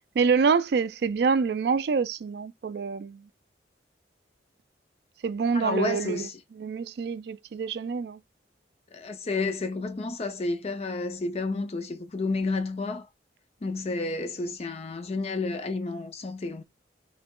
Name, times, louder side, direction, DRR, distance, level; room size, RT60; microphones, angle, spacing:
voice 1, 0.2-3.2 5.2-6.3 6.6-8.2, right 5 dB, 60° right, 0.3 m, -26 dB
voice 2, 5.5-6.4 8.9-13.1 13.6-16.6, left 3 dB, 35° left, 0.4 m, -31 dB
3.2 x 2.9 x 3.6 m
head